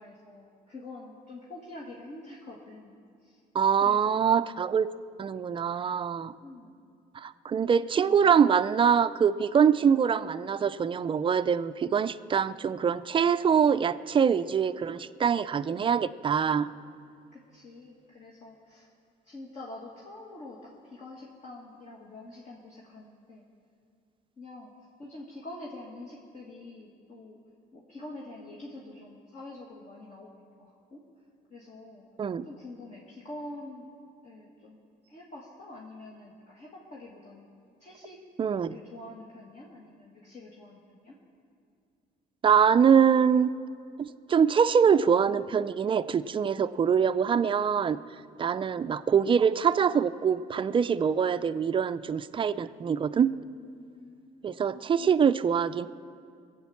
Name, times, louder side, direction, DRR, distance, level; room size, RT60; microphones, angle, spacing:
voice 1, 0.0-3.4 3.8-4.3 6.4-6.8 17.3-18.9 19.2-23.4 24.4-24.7 25.0-27.4 27.7-31.0 31.5-32.0 32.4-33.9 34.2-37.5 37.8-38.2 38.7-41.2 53.9-54.5, left 2 dB, 45° left, -4 dB, 2.1 m, -46 dB
voice 2, 3.5-4.9 5.2-6.3 7.1-16.7 32.2-32.4 38.4-38.8 42.4-43.5 44.0-48.0 48.4-53.3 54.4-55.9, right 7 dB, 30° right, 13 dB, 0.4 m, -24 dB
21.5 x 8.4 x 7.1 m, 2.3 s
cardioid pair, 110°, 17 cm